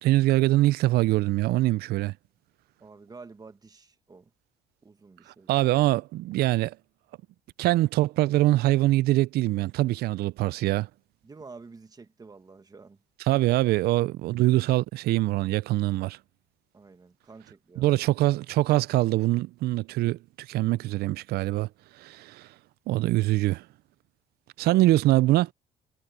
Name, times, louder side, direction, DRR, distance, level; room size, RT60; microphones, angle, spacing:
voice 1, 0.0-2.1 5.5-6.8 7.6-10.9 13.3-16.2 17.8-21.7 22.0-22.5 22.9-23.7 24.6-25.5, right 17 dB, 70° right, 0.4 m, -23 dB
voice 2, 2.8-4.3 4.8-5.5 11.2-13.0 16.7-17.9 24.7-24.8, right 4 dB, 20° right, 1.5 m, -49 dB
cardioid pair, 110°, 17 cm